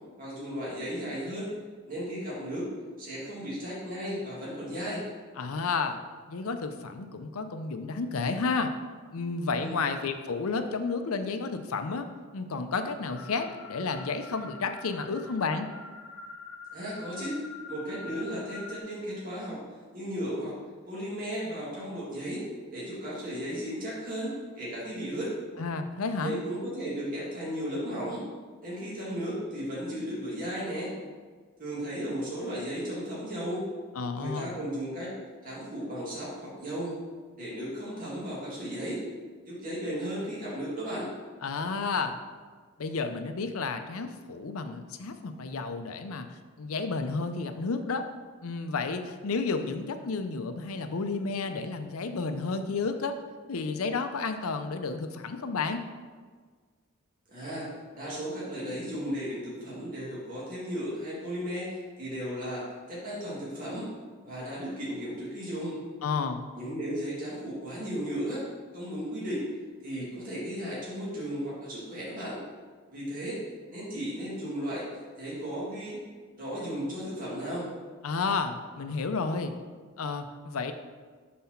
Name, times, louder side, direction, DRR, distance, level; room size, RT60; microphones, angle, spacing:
voice 1, 0.2-1.5 1.9-2.7 3.0-5.0 9.6-9.8 16.7-17.4 17.7-19.6 19.9-20.5 20.9-24.3 24.6-25.3 26.2-28.2 28.6-30.9 31.6-33.7 34.2-35.1 35.4-36.9 37.4-39.0 39.5-41.1 57.3-57.7 57.9-62.6 62.9-63.9 64.2-65.8 66.6-68.4 68.7-69.4 69.8-72.4 72.9-73.4 73.7-76.0 76.4-77.7, equal, 40° right, -7 dB, 2.0 m, -35 dB
voice 2, 5.4-6.0 6.3-8.7 9.1-15.7 25.6-26.3 34.0-34.6 41.4-42.1 42.8-46.3 46.6-48.1 48.4-53.2 53.5-55.8 66.0-66.5 78.0-79.5 80.0-80.7, left 4 dB, 80° left, 8 dB, 0.6 m, -31 dB
sound 1, 13.1-18.8, left 4 dB, 65° left, 1.0 m, -45 dB
5.7 x 4.2 x 5.8 m, 1.5 s
head